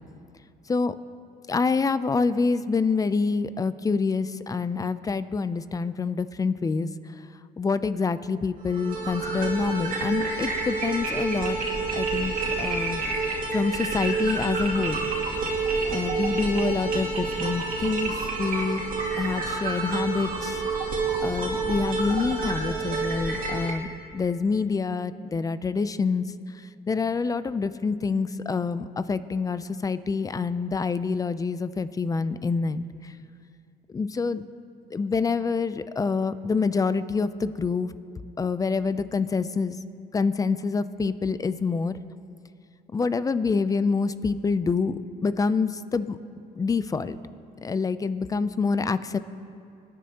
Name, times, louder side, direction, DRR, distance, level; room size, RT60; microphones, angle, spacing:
voice 1, 1.5-6.9 7.6-11.6 11.9-13.0 13.5-15.0 15.9-18.1 18.4-18.8 19.2-20.6 21.2-26.2 26.9-32.8 33.9-34.4 34.9-37.9 38.4-39.8 40.1-42.0 42.9-46.2 46.6-47.2 47.6-49.2, left 4 dB, 20° left, 14 dB, 0.4 m, -26 dB
sound 1, 8.7-23.7, right 3 dB, 55° right, 2.6 m, -28 dB
24.5 x 10.5 x 2.9 m, 2.5 s
cardioid pair, 110°, 17 cm